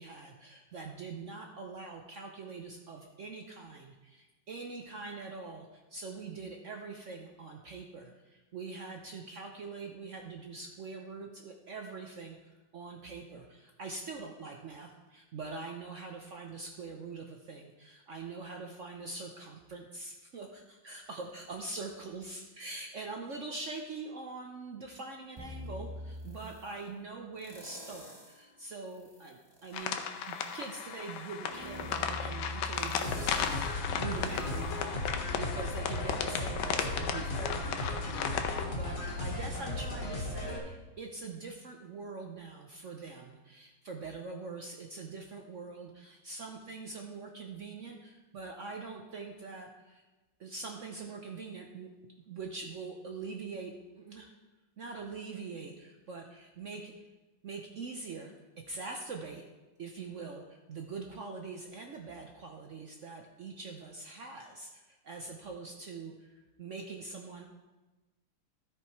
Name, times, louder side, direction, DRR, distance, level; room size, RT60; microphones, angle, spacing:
voice 1, 0.0-30.0 30.3-50.0 50.4-51.9 52.3-54.3 54.8-56.9 57.4-58.3 58.7-59.4 59.8-67.4, right 4 dB, 70° right, 2 dB, 0.7 m, -43 dB
sound 1, 25.4-26.8 27.4-28.4 28.9-35.6 36.1-36.2, left 1 dB, 20° right, 0.7 m, -46 dB
sound 2, 29.7-38.6, left 7 dB, 80° left, 1.5 m, -35 dB
sound 3, 33.0-40.6, left 2 dB, 55° left, 2.0 m, -36 dB
13.0 x 5.1 x 4.6 m, 1.2 s
omnidirectional pair, 2.2 m